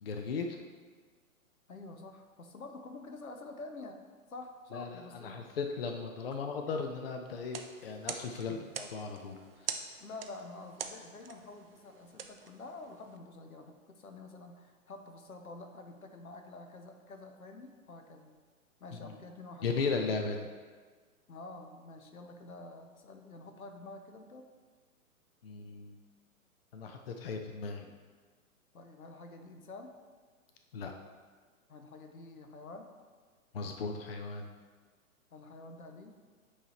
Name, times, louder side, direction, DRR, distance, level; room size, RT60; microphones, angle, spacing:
voice 1, 0.0-0.6 4.7-9.4 9.6-9.7 19.6-20.5 25.4-26.0 26.7-27.9 30.7-30.9 33.5-34.5, left 4 dB, 45° left, 4 dB, 0.5 m, -36 dB
voice 2, 1.7-4.0 4.3-5.5 8.5-8.7 10.0-18.4 18.8-19.9 21.3-24.5 28.7-29.9 31.7-32.9 35.3-36.2, left 2 dB, 75° left, 5 dB, 0.9 m, -48 dB
sound 1, 7.4-13.2, right 6 dB, 45° right, 0.5 m, -45 dB
8.7 x 3.3 x 4.2 m, 1.5 s
figure-of-eight pair, 120°, 43 cm